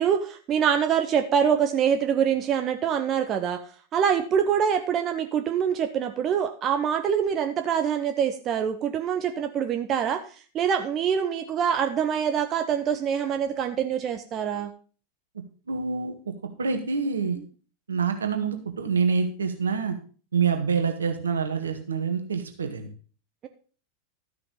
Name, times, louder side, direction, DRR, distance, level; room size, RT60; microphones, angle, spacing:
voice 1, 0.0-3.6 3.9-10.3 10.5-14.7, right 8 dB, 30° right, 7 dB, 0.8 m, -25 dB
voice 2, 15.7-16.3 16.6-17.4 17.9-20.0 20.3-22.9, right 5 dB, 70° right, 6 dB, 1.6 m, -26 dB
13.0 x 5.8 x 5.4 m, 0.39 s
figure-of-eight pair, 90°, 0 cm